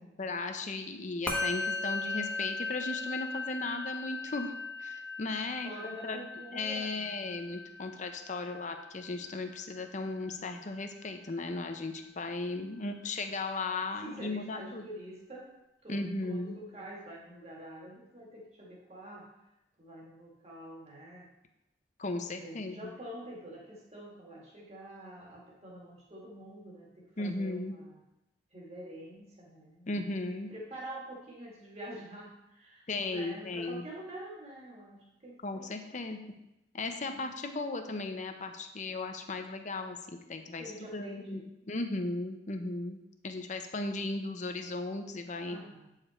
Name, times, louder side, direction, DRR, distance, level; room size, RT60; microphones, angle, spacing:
voice 1, 0.2-4.5 4.8-6.2 6.5-14.8 15.9-16.6 22.0-22.9 27.2-27.7 29.9-30.5 32.9-33.9 35.4-36.2 36.7-40.6 40.9-41.4 41.7-45.6, left 2 dB, 45° left, 6 dB, 0.7 m, -36 dB
Musical instrument, 1.3-10.8, left 3 dB, 5° left, 1.1 m, -38 dB
voice 2, 5.6-7.3 12.5-12.7 14.0-15.5 15.8-19.3 19.8-21.3 22.4-28.0 28.5-30.1 30.5-36.3 37.1-37.2 40.6-41.4 45.5-45.9, right 1 dB, 35° right, -3 dB, 2.1 m, -47 dB
8.6 x 5.0 x 4.4 m, 0.90 s
head